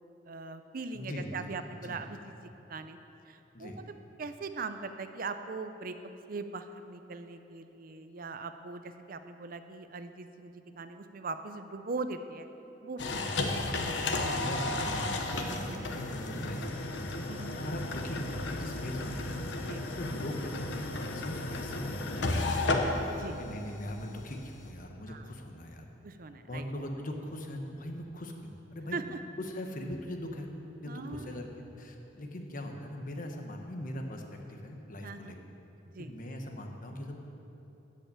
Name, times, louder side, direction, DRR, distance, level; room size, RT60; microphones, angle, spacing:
voice 1, 0.3-2.3 2.7-3.0 3.3-3.8 4.2-12.5 12.8-13.1 13.7-14.4 15.4-15.9 17.3-17.6 19.6-19.8 23.1-23.4 25.1-25.2 26.0-26.6 28.9-29.0 30.9-31.4 35.0-35.4 35.9-36.1, right 4 dB, 50° right, 9 dB, 0.6 m, -41 dB
voice 2, 0.9-1.5 1.8-2.0 3.5-3.8 13.0-13.3 13.9-17.0 17.6-19.4 20.0-22.5 23.4-25.8 26.5-29.0 29.4-30.5 30.8-31.5 31.8-35.4 36.0-37.2, left 1 dB, 50° left, 3 dB, 1.2 m, -40 dB
sound 1, 13.0-24.7, left 2 dB, 90° left, 1.1 m, -33 dB
13.5 x 5.5 x 8.6 m, 3.0 s
head